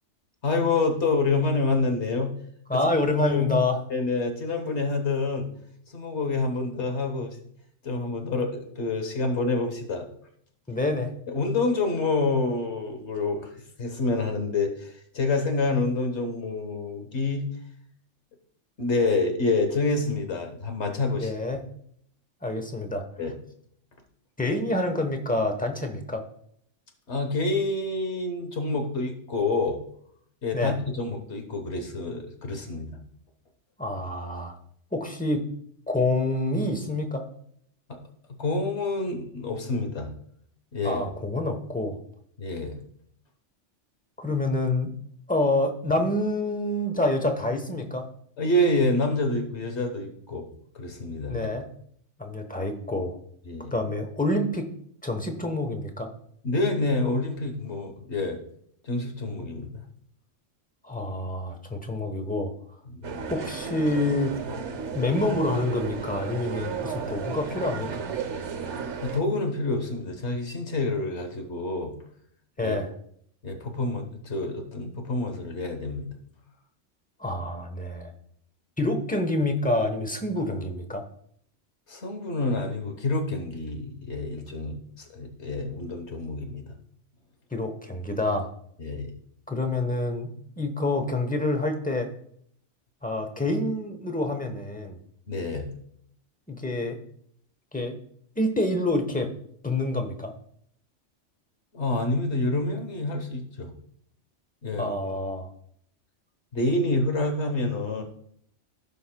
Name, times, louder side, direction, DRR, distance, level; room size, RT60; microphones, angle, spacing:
voice 1, 0.4-2.3 2.7-2.9 3.2-3.5 3.9-5.5 5.9-7.4 7.8-10.1 11.3-13.5 13.8-17.4 18.8-21.3 23.2-23.4 27.1-29.8 30.4-32.9 37.9-38.0 38.3-40.1 40.7-41.0 42.4-42.8 48.4-50.5 50.7-51.5 53.4-53.7 56.4-58.4 58.8-59.7 62.9-63.3 69.0-71.9 72.6-72.8 73.4-76.1 81.9-86.6 88.8-89.1 95.3-95.7 101.7-103.7 104.6-105.1 106.5-108.0, left 2 dB, 65° left, 5 dB, 1.4 m, -27 dB
voice 2, 2.7-3.8 10.7-11.1 21.2-21.6 22.4-23.0 24.4-26.2 30.5-30.7 33.8-34.5 34.9-35.4 35.9-37.2 40.8-42.0 44.2-44.9 45.3-48.0 51.3-51.7 52.2-53.2 53.7-54.7 55.0-56.1 60.8-62.5 63.3-64.3 64.9-68.0 72.6-72.9 77.2-78.1 78.8-81.0 87.5-88.5 89.5-92.1 93.0-95.0 96.5-97.0 97.7-98.0 98.4-99.3 99.6-100.3 104.8-105.5, left 2 dB, 10° left, 5 dB, 0.8 m, -27 dB
sound 1, 63.0-69.2, right 6 dB, 70° right, 1.2 m, -34 dB
16.0 x 5.5 x 2.2 m, 0.66 s
omnidirectional pair, 1.2 m